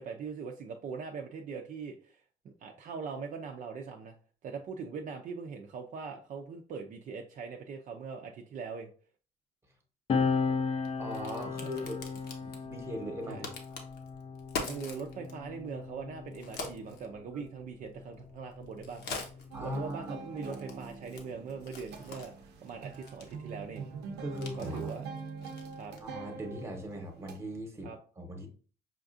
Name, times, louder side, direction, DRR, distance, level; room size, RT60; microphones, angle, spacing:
voice 1, 0.0-2.2 2.4-4.1 4.4-8.9 11.6-11.9 13.3-13.5 14.7-19.2 19.6-22.3 22.6-23.9 24.6-25.0 25.8-25.9 27.8-28.0, right 5 dB, 50° right, 2 dB, 0.5 m, -41 dB
Crack, 10.1-26.2, left 4 dB, 70° left, 0.9 m, -46 dB
sound 1, 10.1-17.0 18.0-19.8, left 5 dB, 35° left, 0.6 m, -36 dB
voice 2, 11.0-13.5 16.6-16.7 17.3-17.4 19.5-20.6 24.2-24.9 26.0-27.9 28.2-28.5, equal, 15° right, 3 dB, 1.0 m, -40 dB
sound 2, 19.5-27.6, right 5 dB, 90° right, 0.6 m, -44 dB
5.6 x 2.4 x 2.5 m, 0.41 s
cardioid pair, 110°, 17 cm